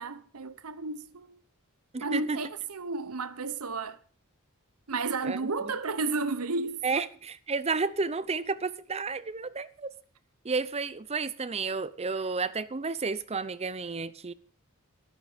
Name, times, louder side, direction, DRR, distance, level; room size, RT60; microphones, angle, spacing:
voice 1, 0.0-1.4 2.0-4.0 4.9-7.0, right 3 dB, 90° right, 1.0 m, -32 dB
voice 2, 1.9-2.4 5.2-5.4 6.8-9.9 10.4-14.3, right 4 dB, 30° right, 0.7 m, -31 dB
12.5 x 12.0 x 5.1 m
head